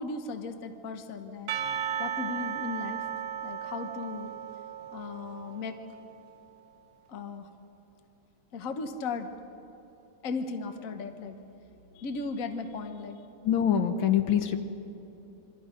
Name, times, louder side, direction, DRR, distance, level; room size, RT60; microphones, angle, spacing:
voice 1, 0.0-1.5 2.0-3.0 3.4-4.3 4.9-5.8 7.1-7.5 8.5-9.3 10.2-11.4 11.9-13.2, left 4 dB, 45° left, 7 dB, 1.4 m, -36 dB
Percussion / Church bell, 1.5-6.0, right 8 dB, 70° right, 1.6 m, -35 dB
voice 2, 13.4-14.6, left 9 dB, 75° left, 7 dB, 1.8 m, -24 dB
27.5 x 24.0 x 5.2 m, 2.9 s
omnidirectional pair, 2.2 m